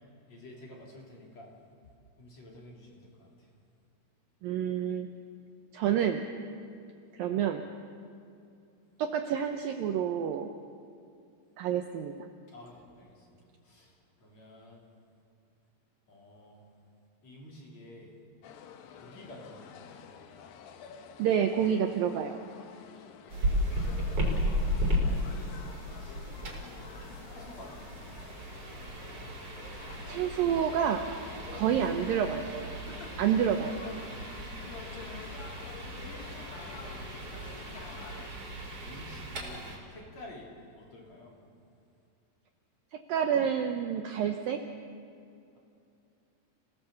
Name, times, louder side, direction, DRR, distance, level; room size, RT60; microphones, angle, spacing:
voice 1, 0.3-1.5 2.2-3.5 12.5-14.8 16.1-16.7 17.2-18.1 19.0-20.0 22.7-23.2 26.2-27.0 27.3-28.3 36.1-37.1 38.8-41.4, left 1 dB, 40° left, -2 dB, 4.2 m, -51 dB
voice 2, 4.4-5.1 5.7-6.2 7.2-7.6 9.0-10.5 11.6-12.3 21.2-22.4 30.1-31.1 31.5-32.8 33.2-33.8 42.9-44.6, right 8 dB, 90° right, 6 dB, 2.0 m, -28 dB
sound 1, 18.4-38.3, left 7 dB, 70° left, 2.3 m, -49 dB
sound 2, 23.3-39.8, equal, 35° right, 4.2 m, -35 dB
28.5 x 17.5 x 7.0 m, 2.5 s
omnidirectional pair, 5.3 m